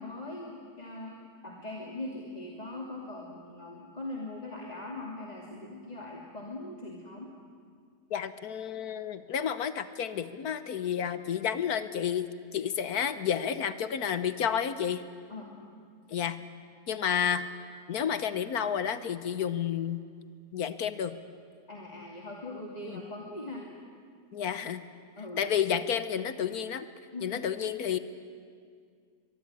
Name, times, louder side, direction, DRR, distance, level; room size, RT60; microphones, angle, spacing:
voice 1, 0.0-7.3 15.3-15.6 21.7-23.7 25.2-25.5 27.1-27.4, left 2 dB, 25° left, -2 dB, 2.7 m, -41 dB
voice 2, 8.1-12.3 12.5-15.0 16.1-16.4 16.9-17.5 17.9-20.0 20.5-21.2 22.9-23.0 24.3-24.8 25.4-26.9 27.2-28.0, left 8 dB, 75° left, 12 dB, 1.5 m, -30 dB
23.0 x 22.5 x 9.9 m, 2.1 s
omnidirectional pair, 1.7 m